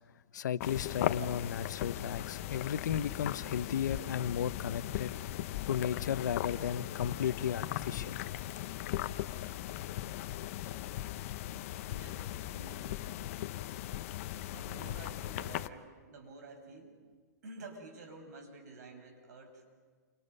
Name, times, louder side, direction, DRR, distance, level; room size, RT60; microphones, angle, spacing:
voice 1, 0.3-5.1 5.7-8.1, left 8 dB, 80° left, 14 dB, 0.9 m, -34 dB
sound 1, 0.6-15.7, left 13 dB, 50° left, 0.8 m, -38 dB
voice 2, 11.9-13.1 14.3-17.0 17.4-19.6, right 2 dB, 70° right, 3 dB, 5.9 m, -50 dB
29.5 x 25.5 x 5.5 m, 1.5 s
hypercardioid pair, 150°, 10 cm